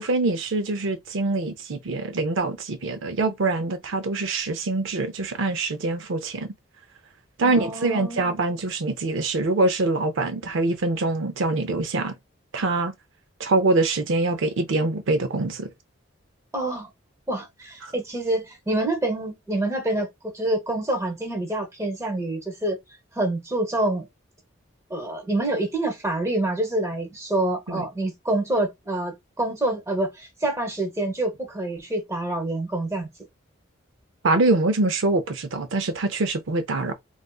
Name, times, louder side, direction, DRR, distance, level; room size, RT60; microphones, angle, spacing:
voice 1, 0.0-6.5 7.4-12.1 12.5-12.9 13.4-15.7 17.8-17.9 27.7-27.8 34.2-36.9, right 2 dB, 70° right, 0.5 m, -24 dB
voice 2, 7.4-8.4 16.5-16.9 17.3-22.8 23.1-24.1 24.9-33.1, right 1 dB, 15° right, 0.9 m, -27 dB
3.6 x 2.5 x 2.3 m
head